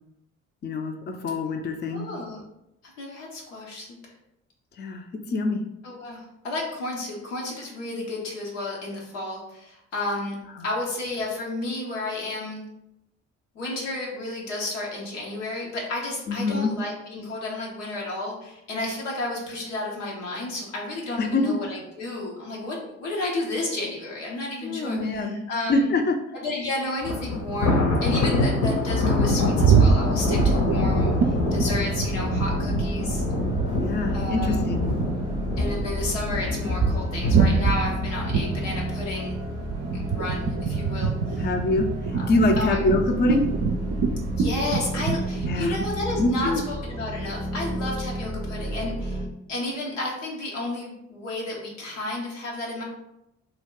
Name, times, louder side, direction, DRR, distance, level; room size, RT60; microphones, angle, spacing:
voice 1, 0.6-2.1 4.8-5.6 16.3-16.7 21.2-21.5 24.6-25.3 25.7-26.2 33.7-34.8 41.4-43.4 45.4-45.8 46.2-46.6, left 2 dB, 30° left, 4 dB, 0.5 m, -25 dB
voice 2, 1.9-2.4 3.0-4.0 5.8-10.4 10.6-12.6 13.5-25.9 26.4-33.2 34.1-34.6 35.6-39.4 39.9-41.5 42.1-42.3 42.6-42.8 44.4-49.2 49.5-52.8, left 2 dB, 85° left, -3 dB, 0.7 m, -32 dB
Thunder, 27.0-40.3 40.7-41.0 41.4-41.5 42.4-42.9, left 2 dB, 55° left, 0.8 m, -26 dB
sound 1, 28.3-33.9 34.1-46.6, right 5 dB, 45° right, 0.5 m, -26 dB
sound 2, 30.1-49.3, right 1 dB, 15° right, 0.7 m, -32 dB
2.7 x 2.2 x 3.6 m, 0.84 s
hypercardioid pair, 40°, 36 cm